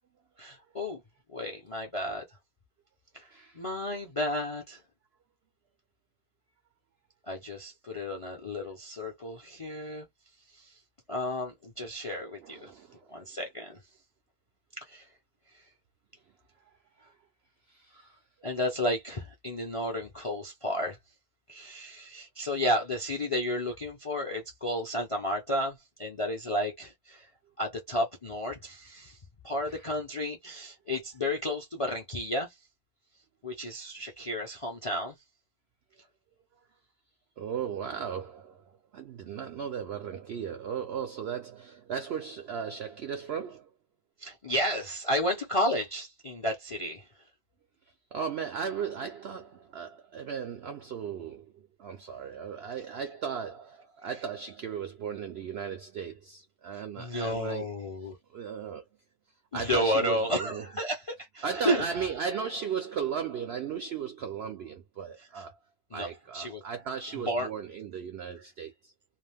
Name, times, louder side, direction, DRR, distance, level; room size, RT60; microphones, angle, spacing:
voice 1, 0.4-1.0 1.3-2.2 3.1-4.8 7.3-10.1 10.5-10.8 11.1-12.7 13.1-13.8 14.8-15.1 15.5-15.7 18.4-21.0 21.5-27.3 27.6-29.2 29.4-32.5 33.4-35.2 44.2-47.1 57.0-58.2 59.5-61.9 65.3-65.4 65.9-66.1 66.3-66.6 67.1-67.5, left 1 dB, 45° left, 0.4 m, -32 dB
voice 2, 3.3-3.6 12.4-13.2 16.7-17.1 17.7-18.1 29.7-29.8 37.4-43.7 48.1-57.7 58.3-58.8 59.5-60.6 61.4-65.6 65.9-68.9, right 7 dB, 75° right, 0.6 m, -36 dB
2.5 x 2.3 x 3.4 m
omnidirectional pair, 1.6 m